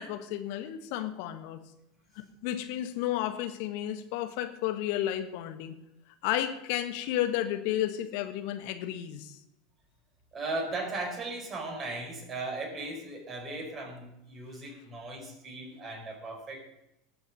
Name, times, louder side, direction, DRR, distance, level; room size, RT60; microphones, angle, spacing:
voice 1, 0.0-1.6 2.1-5.7 6.2-9.4, left 12 dB, 60° left, 10 dB, 1.3 m, -32 dB
voice 2, 10.3-16.6, right 2 dB, 30° right, 1 dB, 4.9 m, -37 dB
19.0 x 6.9 x 5.4 m, 0.87 s
hypercardioid pair, 80°, 0 cm